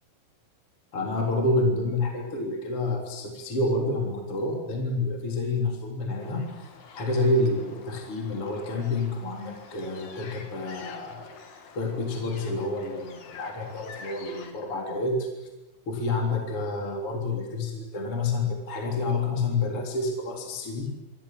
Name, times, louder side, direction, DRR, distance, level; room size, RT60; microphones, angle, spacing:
voice 1, 0.9-6.5 6.9-11.4 11.8-15.5 15.9-20.9, left 2 dB, 30° left, 1 dB, 4.0 m, -28 dB
sound 1, 6.2-14.5, left 5 dB, 55° left, 4.4 m, -47 dB
26.0 x 25.0 x 7.7 m, 1.0 s
omnidirectional pair, 5.4 m